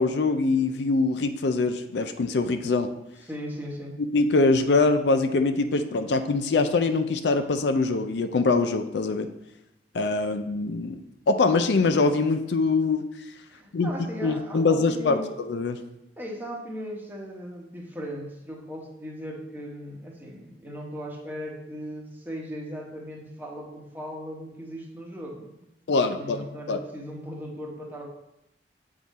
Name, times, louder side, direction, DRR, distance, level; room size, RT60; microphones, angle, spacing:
voice 1, 0.0-2.9 4.1-9.3 9.9-11.0 11.3-13.0 13.7-13.9 14.2-15.2 15.5-15.8 25.9-26.8, left 3 dB, 75° left, 8 dB, 0.5 m, -23 dB
voice 2, 3.2-4.0 13.5-15.3 16.2-28.1, equal, 10° right, -1 dB, 1.0 m, -38 dB
7.7 x 3.7 x 4.1 m, 0.86 s
head